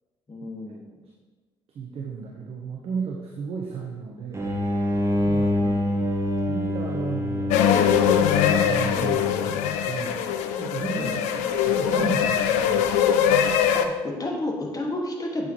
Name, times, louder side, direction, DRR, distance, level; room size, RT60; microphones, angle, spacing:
voice 1, 0.3-1.1 10.9-11.4 13.7-15.5, left 1 dB, 30° left, 0 dB, 2.2 m, -32 dB
voice 2, 1.7-4.5 5.3-5.5 6.5-7.6 8.7-10.2 10.6-13.0, right 5 dB, 50° right, -1 dB, 1.1 m, -34 dB
sound 1, 4.3-9.7, left 1 dB, 25° right, 1.7 m, -26 dB
sound 2, 7.5-13.9, left 8 dB, 70° left, 0.6 m, -22 dB
8.2 x 8.2 x 3.2 m, 1.4 s
hypercardioid pair, 50°, 12 cm